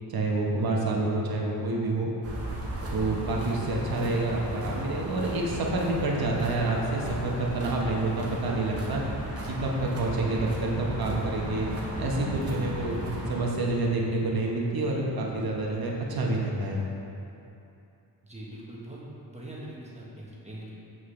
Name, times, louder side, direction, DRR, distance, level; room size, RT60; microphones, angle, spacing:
voice 1, 0.1-2.1 2.9-9.0 9.5-11.7 12.0-13.0 13.3-16.8, right 2 dB, 55° right, -2 dB, 1.1 m, -28 dB
sound 1, 2.2-13.4, right 1 dB, 35° right, 1.2 m, -35 dB
voice 2, 18.2-19.0 19.3-20.8, right 1 dB, 15° right, -6 dB, 1.4 m, -42 dB
7.5 x 6.2 x 3.3 m, 2.8 s
wide cardioid pair, 115°, 43 cm